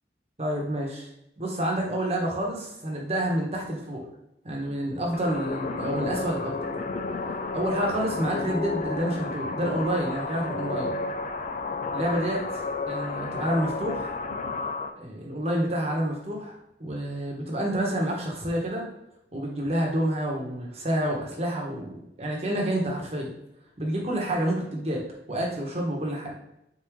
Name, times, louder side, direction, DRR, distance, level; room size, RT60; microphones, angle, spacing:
voice 1, 0.4-1.1 1.4-4.1 4.4-6.7 7.5-10.9 11.9-14.1 15.0-18.9 19.3-23.3 23.8-25.0 25.3-26.3, right 1 dB, 35° right, -2 dB, 1.1 m, -29 dB
sound 1, 5.1-14.9, left 3 dB, 40° left, 0.4 m, -32 dB
4.3 x 3.6 x 3.0 m, 0.82 s
head